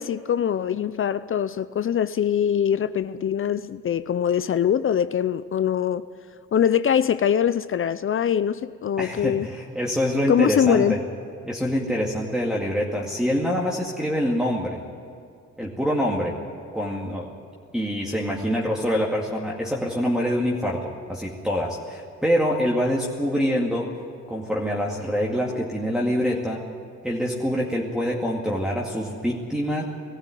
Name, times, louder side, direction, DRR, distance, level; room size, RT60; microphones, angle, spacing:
voice 1, 0.0-6.0 6.5-9.5 10.3-11.0, left 9 dB, 45° left, 0.6 m, -23 dB
voice 2, 9.0-11.0 11.5-14.8 15.6-16.4 16.7-17.3 17.7-23.9 24.3-26.7 27.0-29.8, equal, ahead, 2.2 m, -25 dB
19.5 x 14.5 x 9.2 m
cardioid pair, 90°, 30 cm